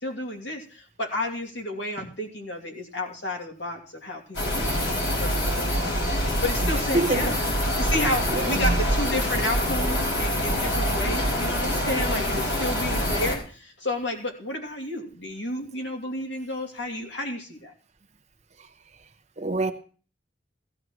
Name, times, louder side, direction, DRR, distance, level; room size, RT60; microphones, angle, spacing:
voice 1, 0.0-5.9 6.4-7.3 7.8-17.7, left 1 dB, 70° left, 2.7 m, -31 dB
sound 1, 4.3-13.3, equal, 90° left, 4.9 m, -25 dB
voice 2, 6.9-7.4 8.3-8.8 18.6-18.7 19.0-19.1 19.4-19.7, right 2 dB, 35° right, 1.0 m, -26 dB
16.5 x 13.0 x 3.1 m
head